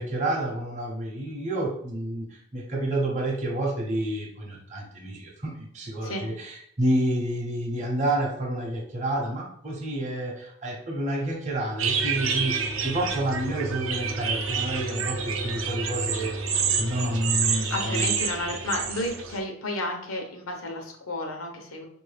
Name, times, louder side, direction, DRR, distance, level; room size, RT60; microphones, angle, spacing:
voice 1, 0.0-18.1, right 1 dB, 35° right, -1 dB, 0.7 m, -29 dB
sound 1, 11.8-19.4, right 5 dB, 70° right, 0.6 m, -28 dB
voice 2, 17.7-21.8, left 1 dB, 90° left, 2 dB, 0.9 m, -32 dB
4.4 x 2.6 x 3.3 m, 0.67 s
head